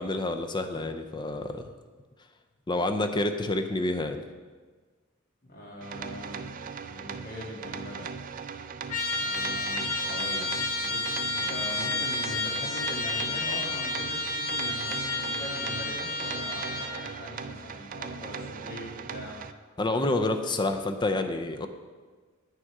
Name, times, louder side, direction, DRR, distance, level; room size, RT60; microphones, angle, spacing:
voice 1, 0.0-1.7 2.7-4.2 19.8-21.7, left 2 dB, 20° left, 7 dB, 0.5 m, -28 dB
voice 2, 5.5-6.5 6.9-8.1 9.1-10.5 10.8-19.4, left 1 dB, 45° left, -3 dB, 1.9 m, -41 dB
sound 1, 5.8-19.5, right 6 dB, 40° right, 0.3 m, -39 dB
Trumpet, 8.9-17.0, left 2 dB, 80° left, 1.5 m, -31 dB
8.9 x 6.4 x 4.7 m, 1.5 s
head